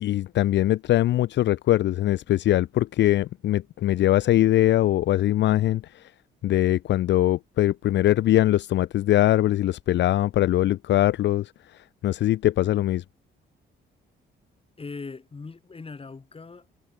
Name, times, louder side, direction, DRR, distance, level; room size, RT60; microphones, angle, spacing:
voice 1, 0.0-6.1 6.4-13.0, left 14 dB, 65° left, 0.5 m, -22 dB
voice 2, 14.8-16.7, left 4 dB, 30° left, 5.1 m, -40 dB
cardioid pair, 90°, 20 cm